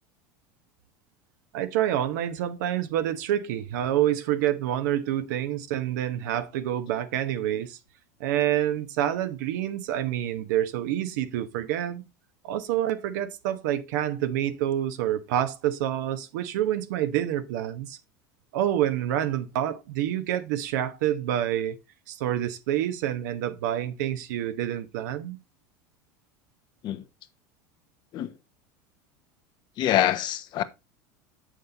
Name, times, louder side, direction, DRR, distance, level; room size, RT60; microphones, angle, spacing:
voice 1, 1.5-7.8 8.2-12.0 12.4-18.0 18.5-21.8 22.1-25.4, right 11 dB, 75° right, 1.1 m, -27 dB
voice 2, 29.8-30.6, left 12 dB, 50° left, 1.1 m, -25 dB
8.0 x 6.5 x 4.0 m
hypercardioid pair, 95°, 10 cm